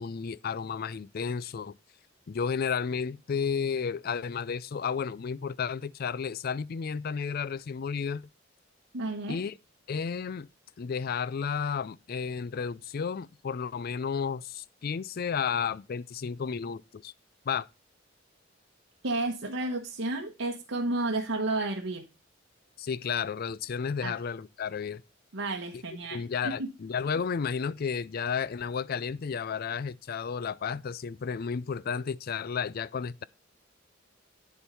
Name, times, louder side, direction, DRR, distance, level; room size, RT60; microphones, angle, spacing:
voice 1, 0.0-1.7 2.3-8.2 9.3-9.5 9.9-10.5 10.8-17.1 17.5-17.7 22.8-25.0 25.7-25.8 26.1-33.2, left 6 dB, 50° left, 0.4 m, -32 dB
voice 2, 8.9-9.4 19.0-22.1 24.0-24.1 25.3-26.7, right 2 dB, 80° right, 1.1 m, -32 dB
10.5 x 4.6 x 6.7 m
head